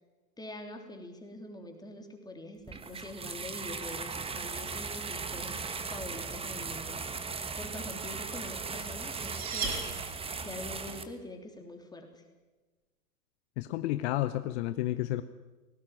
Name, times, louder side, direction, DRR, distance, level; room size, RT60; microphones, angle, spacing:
voice 1, 0.4-7.0 7.5-9.8 10.4-12.2, left 1 dB, 10° left, 4 dB, 3.2 m, -44 dB
sound 1, 2.7-11.0, right 5 dB, 10° right, 1.4 m, -38 dB
sound 2, 9.0-10.6, right 4 dB, 35° right, 5.1 m, -38 dB
voice 2, 13.6-15.2, left 15 dB, 45° left, 12 dB, 0.9 m, -31 dB
19.0 x 16.5 x 9.0 m, 1.2 s
figure-of-eight pair, 100°, 47 cm